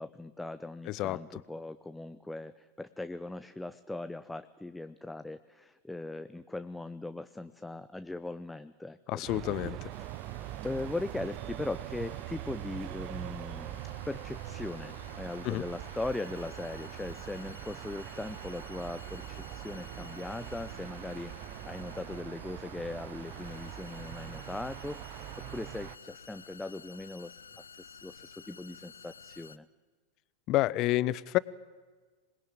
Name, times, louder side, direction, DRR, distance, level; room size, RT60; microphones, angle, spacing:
voice 1, 0.0-9.7 10.6-13.8 14.1-21.3 21.7-25.3 25.5-29.7, left 2 dB, 5° left, 12 dB, 0.7 m, -39 dB
voice 2, 0.9-1.4 9.1-9.9 15.4-15.6 30.5-31.4, left 17 dB, 40° left, 20 dB, 0.8 m, -29 dB
sound 1, 9.2-26.0, right 16 dB, 40° right, 0.8 m, -43 dB
sound 2, 9.9-29.6, left 6 dB, 75° left, 0.8 m, -52 dB
26.5 x 20.5 x 9.1 m, 1.4 s
figure-of-eight pair, 90°, 0 cm